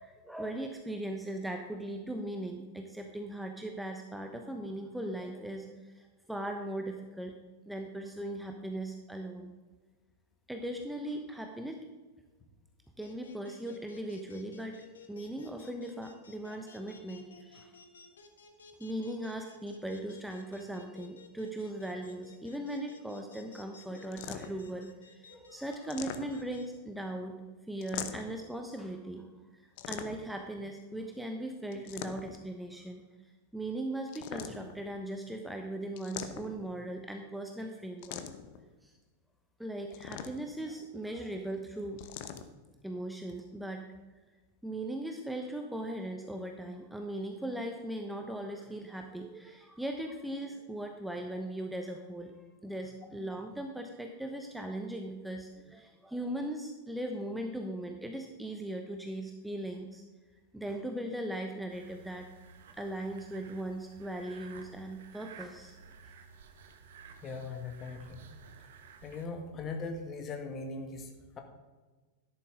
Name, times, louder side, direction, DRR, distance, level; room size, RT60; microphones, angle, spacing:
voice 1, 0.0-7.3 7.7-9.5 10.5-11.8 13.0-14.8 15.1-17.7 18.8-27.4 27.7-33.0 33.5-38.2 38.5-38.9 39.6-42.0 42.8-43.8 44.6-60.0 60.5-62.3 62.7-65.8, right 1 dB, 5° right, 3 dB, 1.0 m, -39 dB
sound 1, 13.0-26.6, left 5 dB, 70° left, 1.4 m, -54 dB
sound 2, 24.1-24.7 25.7-26.6 27.8-28.4 29.8-30.4 31.7-32.5 34.1-34.9 36.0-36.7 38.0-38.6 39.9-40.6 42.0-42.5, left 10 dB, 50° left, 0.9 m, -42 dB
sound 3, 61.7-69.3, right 5 dB, 60° right, 1.3 m, -53 dB
voice 2, 67.2-68.2 69.0-71.4, left 3 dB, 25° left, 4 dB, 1.8 m, -40 dB
13.0 x 11.0 x 3.7 m, 1.3 s
figure-of-eight pair, 90°, 0 cm